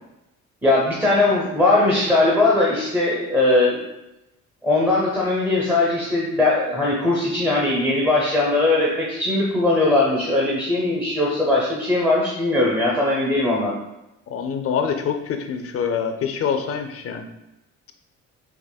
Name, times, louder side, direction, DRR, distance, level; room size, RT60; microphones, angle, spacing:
voice 1, 0.6-3.8 4.6-13.7, left 2 dB, 5° right, -4 dB, 0.8 m, -20 dB
voice 2, 14.3-17.3, left 7 dB, 50° left, 6 dB, 0.5 m, -25 dB
4.9 x 3.0 x 2.2 m, 0.92 s
cardioid pair, 90°, 30 cm